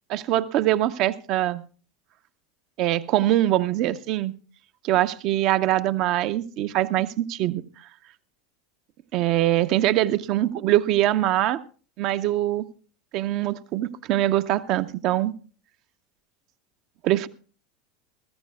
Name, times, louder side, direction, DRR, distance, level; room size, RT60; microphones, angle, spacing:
voice 1, 0.1-1.6 2.8-4.3 4.8-7.6 9.1-11.6 12.0-12.7 13.1-15.3 17.0-17.3, right 14 dB, 50° right, 0.8 m, -23 dB
23.0 x 14.5 x 2.3 m
figure-of-eight pair, 80°, 0 cm